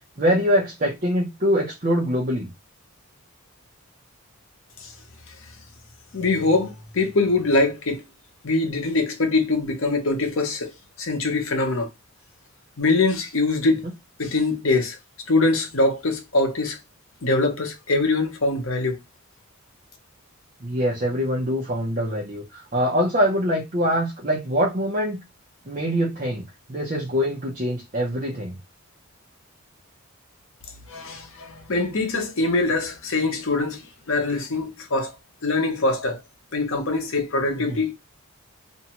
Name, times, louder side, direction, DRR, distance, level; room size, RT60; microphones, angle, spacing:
voice 1, 0.2-2.5 20.6-25.2 25.7-26.4 26.7-28.5 37.7-37.8, equal, 35° right, 0.7 m, -24 dB
voice 2, 6.1-8.0 8.4-10.7 11.0-11.9 12.8-13.8 14.2-15.0 15.3-16.8 17.2-19.0 30.9-35.1 35.4-36.2 36.5-37.9, left 3 dB, 65° left, 0.8 m, -23 dB
2.6 x 2.2 x 2.8 m
head